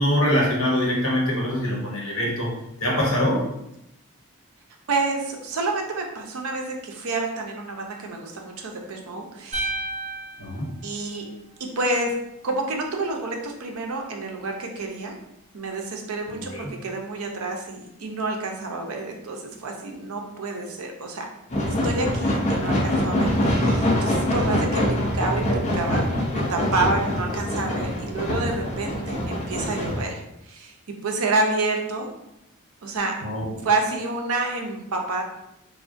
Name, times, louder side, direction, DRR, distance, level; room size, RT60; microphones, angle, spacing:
voice 1, 0.0-2.5 2.8-3.4 10.4-10.7 16.3-16.6 33.2-33.6, left 1 dB, 65° left, -3 dB, 1.0 m, -23 dB
voice 2, 4.9-9.7 10.8-11.3 11.6-12.1 12.4-15.1 15.5-21.3 21.7-30.7 31.0-32.1 32.8-33.2 33.6-35.2, right 3 dB, 75° right, 2 dB, 0.5 m, -28 dB
sound 1, 9.5-11.8, right 2 dB, 30° right, 0.8 m, -33 dB
sound 2, 21.5-30.0, left 1 dB, 30° left, 0.5 m, -24 dB
3.5 x 2.1 x 2.5 m, 0.85 s
head